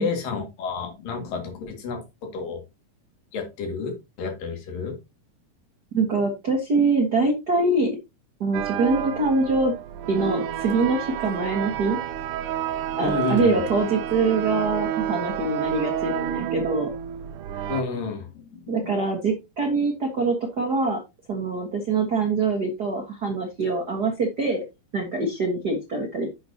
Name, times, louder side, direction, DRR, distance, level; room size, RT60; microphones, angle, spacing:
voice 1, 0.0-2.6 3.3-5.0 13.0-13.6 17.7-19.0, left 5 dB, 80° left, 4 dB, 3.9 m, -30 dB
voice 2, 5.9-8.0 8.4-9.7 10.1-12.0 13.0-16.9 18.7-21.0 21.3-24.6 24.9-26.3, right 3 dB, 50° right, 1 dB, 1.2 m, -24 dB
sound 1, 8.5-17.8, right 10 dB, 75° right, 2.2 m, -29 dB
10.5 x 7.8 x 2.8 m, 0.25 s
omnidirectional pair, 3.9 m